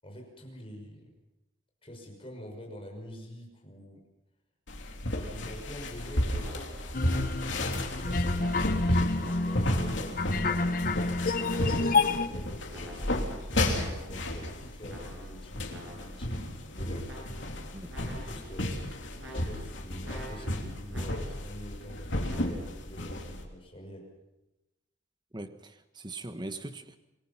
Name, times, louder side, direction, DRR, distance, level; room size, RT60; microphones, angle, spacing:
voice 1, 0.0-1.1 1.8-4.0 5.2-6.7 7.3-10.9 11.3-17.1 18.1-18.9 19.3-24.1, equal, 30° left, 1 dB, 5.9 m, -46 dB
sound 1, 4.7-23.4, left 1 dB, 70° left, 3.3 m, -33 dB
sound 2, 6.4-7.7 8.4-9.8 10.5-12.1 12.7-14.3 14.9-16.3 17.0-17.6 17.9-18.6 19.2-21.5 22.2-22.6, right 1 dB, 70° right, 7.0 m, -48 dB
sound 3, 6.9-12.3, left 3 dB, 45° left, 1.1 m, -29 dB
voice 2, 25.3-27.0, right 2 dB, 20° right, 9 dB, 1.2 m, -40 dB
28.0 x 20.0 x 5.8 m, 0.99 s
head